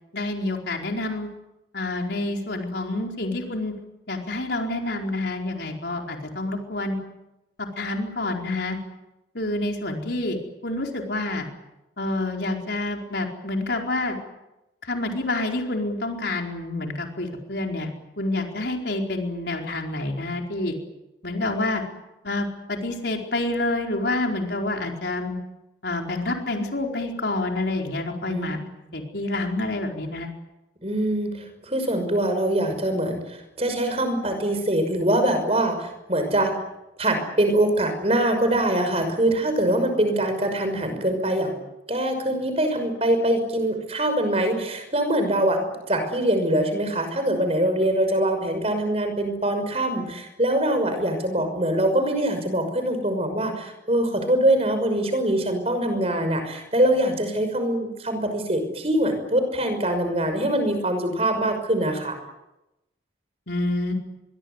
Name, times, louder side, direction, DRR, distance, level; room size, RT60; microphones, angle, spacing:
voice 1, 0.1-1.3 1.7-3.7 4.1-7.0 7.6-8.8 9.3-10.4 10.6-11.5 12.0-14.2 14.9-17.9 18.2-20.7 21.2-21.8 22.2-25.4 25.8-28.6 28.9-30.3 63.5-63.9, left 2 dB, 65° left, 2 dB, 4.7 m, -28 dB
voice 2, 30.8-36.5 37.0-41.5 41.9-45.6 45.9-62.2, right 1 dB, 35° right, 7 dB, 5.9 m, -23 dB
25.0 x 23.0 x 8.2 m, 0.95 s
head